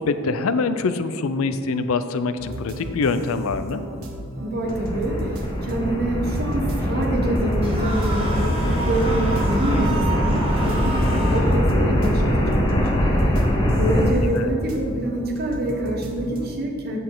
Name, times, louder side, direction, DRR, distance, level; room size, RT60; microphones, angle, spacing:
voice 1, 0.0-3.8 13.7-14.5, left 4 dB, 75° left, 11 dB, 0.5 m, -25 dB
sound 1, 2.4-16.5, right 1 dB, 70° right, 1.0 m, -35 dB
voice 2, 4.4-13.1 13.6-17.0, right 1 dB, 45° right, 0 dB, 1.2 m, -26 dB
sound 2, 4.6-14.1, equal, 20° left, 0.8 m, -22 dB
sound 3, 7.6-11.6, right 2 dB, 25° right, 1.4 m, -31 dB
8.3 x 6.6 x 3.8 m, 2.3 s
head